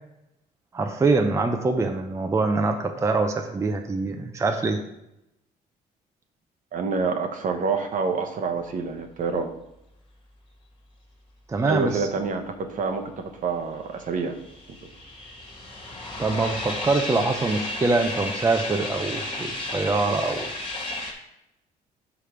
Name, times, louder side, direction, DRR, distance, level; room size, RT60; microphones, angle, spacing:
voice 1, 0.7-4.8 11.5-12.1 16.2-20.5, right 3 dB, 15° right, 5 dB, 0.5 m, -24 dB
voice 2, 6.7-9.5 11.6-14.4, right 4 dB, 50° right, 6 dB, 0.9 m, -27 dB
sound 1, 14.0-21.1, left 2 dB, 30° left, 1.7 m, -33 dB
5.0 x 4.9 x 5.8 m, 0.87 s
cardioid pair, 110°, 17 cm